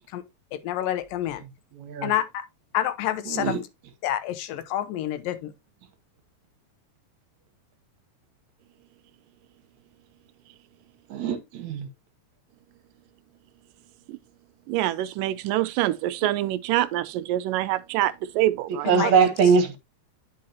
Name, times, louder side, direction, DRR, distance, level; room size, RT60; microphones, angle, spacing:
voice 1, 0.5-1.4 2.0-2.4 2.7-3.6 4.0-5.5 18.9-19.3, left 12 dB, 90° left, 2.6 m, -28 dB
voice 2, 1.8-2.1 3.3-3.6 11.1-11.9 18.8-19.8, right 6 dB, 65° right, 2.2 m, -22 dB
voice 3, 14.7-19.1, right 15 dB, 85° right, 2.1 m, -25 dB
9.5 x 5.7 x 2.8 m
omnidirectional pair, 3.9 m